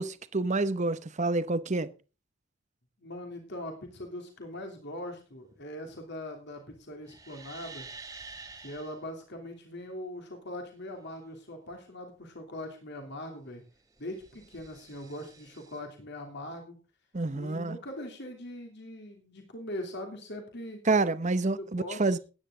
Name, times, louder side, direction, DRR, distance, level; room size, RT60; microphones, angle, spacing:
voice 1, 0.0-1.9 17.1-17.8 20.9-22.2, right 3 dB, 35° right, 0.8 m, -28 dB
voice 2, 3.0-7.9 8.6-13.6 14.0-16.8 17.3-20.8 21.5-22.0, left 1 dB, 55° left, 2.9 m, -41 dB
sound 1, 7.1-9.0 13.8-15.8, right 4 dB, 15° right, 1.3 m, -48 dB
16.0 x 10.0 x 3.8 m
head